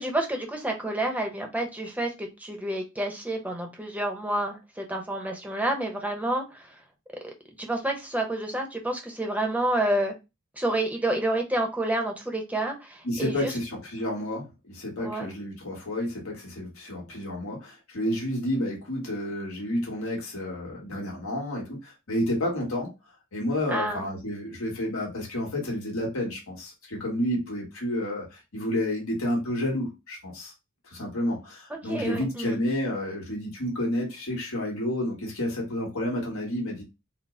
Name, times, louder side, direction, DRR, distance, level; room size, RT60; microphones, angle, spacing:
voice 1, 0.0-6.8 7.2-10.1 10.6-13.5 15.0-15.3 23.7-24.1 31.7-32.6, right 1 dB, 5° right, 3 dB, 0.8 m, -29 dB
voice 2, 13.0-22.9 23.3-30.5 30.9-36.8, left 1 dB, 80° left, -1 dB, 1.4 m, -30 dB
4.0 x 2.1 x 3.8 m, 0.25 s
head